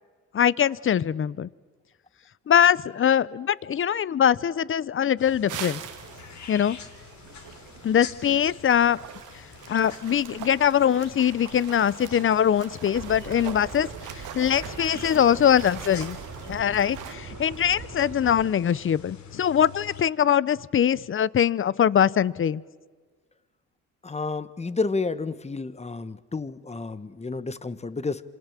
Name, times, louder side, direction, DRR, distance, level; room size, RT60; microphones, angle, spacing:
voice 1, 0.3-1.5 2.5-5.8 6.5-6.8 7.8-9.0 9.7-13.9 14.1-16.2 16.5-22.6, left 9 dB, 45° left, 21 dB, 0.8 m, -22 dB
sound 1, 5.2-20.1, left 6 dB, 70° left, 3.6 m, -46 dB
sound 2, 5.5-17.2, right 10 dB, 90° right, 2.2 m, -42 dB
sound 3, 12.9-18.5, right 5 dB, 70° right, 3.9 m, -41 dB
voice 2, 24.0-28.2, left 3 dB, 20° left, 14 dB, 1.4 m, -30 dB
27.5 x 27.0 x 7.5 m, 1.5 s
cardioid pair, 90°, 30 cm